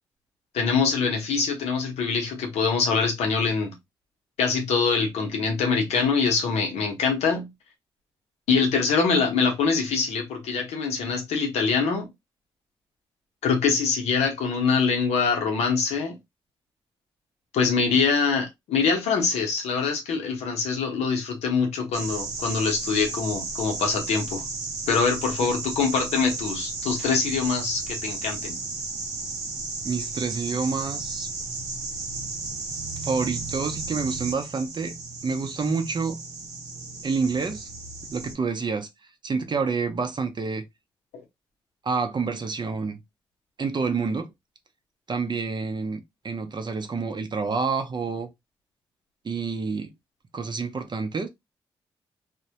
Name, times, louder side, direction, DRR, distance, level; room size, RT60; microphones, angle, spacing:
voice 1, 0.5-3.7 4.4-7.5 8.5-12.1 13.4-16.2 17.5-24.4 24.9-28.6, left 5 dB, 85° left, 0.7 m, -24 dB
sound 1, 21.9-38.3, right 3 dB, 90° right, 0.6 m, -34 dB
voice 2, 29.8-31.3 33.0-34.9 35.2-36.2 37.0-37.7 38.1-38.9 39.2-40.7 41.8-43.0 43.6-44.3 45.1-48.3 49.2-49.9 50.3-51.3, right 4 dB, 45° right, 0.6 m, -28 dB
2.1 x 2.1 x 2.7 m
supercardioid pair, 40°, 11 cm